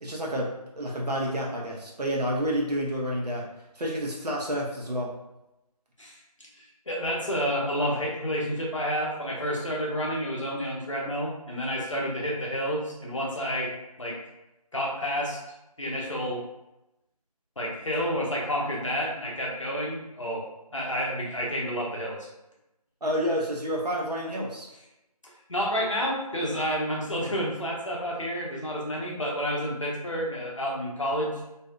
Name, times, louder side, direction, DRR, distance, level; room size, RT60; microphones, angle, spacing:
voice 1, 0.0-3.4 3.8-5.1 23.0-24.7, equal, 85° right, -3 dB, 0.8 m, -29 dB
voice 2, 6.6-13.7 14.0-14.2 14.7-15.4 15.8-16.4 17.6-20.4 20.7-22.3 25.5-31.4, equal, 50° left, -3 dB, 0.6 m, -30 dB
2.6 x 2.2 x 2.3 m, 0.93 s
figure-of-eight pair, 175°, 20 cm